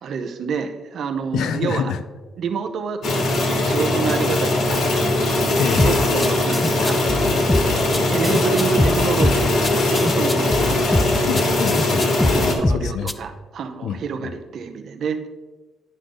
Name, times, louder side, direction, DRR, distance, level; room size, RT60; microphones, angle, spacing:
voice 1, 0.0-1.9 2.4-5.2 5.8-7.0 7.3-7.4 8.1-11.3 12.2-15.4, right 5 dB, 55° right, 7 dB, 0.7 m, -28 dB
voice 2, 1.3-2.0 5.6-6.1 11.3-13.1 13.8-14.3, left 7 dB, 75° left, 11 dB, 0.5 m, -27 dB
sound 1, 3.0-12.5, left 2 dB, 60° left, 1.5 m, -20 dB
sound 2, 5.8-13.1, left 2 dB, 10° left, 0.3 m, -22 dB
9.9 x 5.0 x 3.9 m, 1.2 s
cardioid pair, 155°, 0 cm